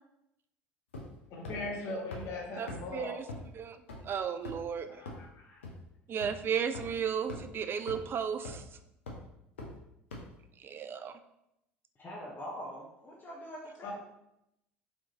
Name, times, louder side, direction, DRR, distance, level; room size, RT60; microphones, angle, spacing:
sound 1, 0.9-1.2 1.4-1.5 2.1-2.2 2.7-2.8 3.3-3.4 3.9-4.0 4.4-4.7 5.0-5.1 5.6-5.7 6.2-6.3 6.7-6.8 7.3-7.4 7.9-8.0 8.4-8.7 9.1-9.2 9.6-9.7 10.1-10.2, left 2 dB, 80° left, 0.7 m, -41 dB
voice 1, 1.3-3.2 4.8-5.6 13.8-13.9, left 2 dB, 50° left, -1 dB, 1.0 m, -40 dB
voice 2, 2.6-3.2 3.6-5.0 6.1-8.6 10.6-11.1, right 7 dB, 35° right, 9 dB, 0.4 m, -34 dB
voice 3, 12.0-13.9, equal, 30° left, -4 dB, 0.8 m, -43 dB
4.1 x 3.0 x 2.9 m, 0.83 s
figure-of-eight pair, 65°, 6 cm